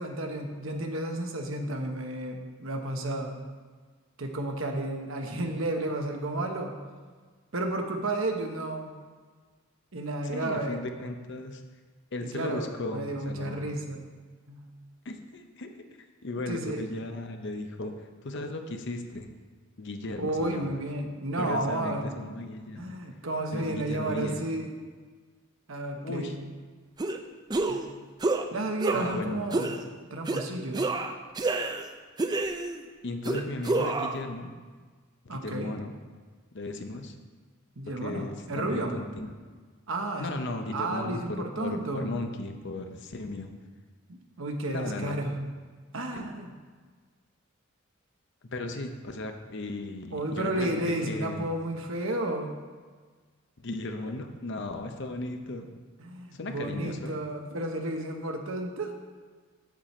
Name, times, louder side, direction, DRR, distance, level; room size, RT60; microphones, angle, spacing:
voice 1, 0.0-3.3 4.2-6.8 7.5-8.9 9.9-10.8 12.2-14.0 14.5-14.7 16.5-16.8 20.2-22.2 22.8-24.7 25.7-26.4 27.7-27.8 28.5-29.7 30.1-30.9 35.3-35.7 37.8-38.9 39.9-40.3 40.7-42.1 44.1-45.3 45.9-46.5 50.1-52.5 56.0-58.9, right 1 dB, 65° right, 3 dB, 1.0 m, -32 dB
voice 2, 10.2-11.6 12.1-13.7 15.0-15.8 16.2-19.3 19.8-20.8 21.4-23.0 23.5-24.5 26.0-26.4 28.9-29.4 33.0-34.5 35.2-35.9 36.5-37.1 38.0-39.3 40.2-43.5 44.7-45.1 46.1-46.3 48.5-50.8 51.1-51.5 53.6-55.7 56.3-57.1, left 2 dB, 55° left, 5 dB, 0.7 m, -36 dB
sound 1, 27.0-27.2 27.5-27.9 28.2-28.5 28.8-29.2 29.5-29.8 30.3-30.4 30.7-31.9 32.2-32.8 33.2-34.2, right 2 dB, 20° right, 0.4 m, -28 dB
7.4 x 7.4 x 4.3 m, 1.5 s
head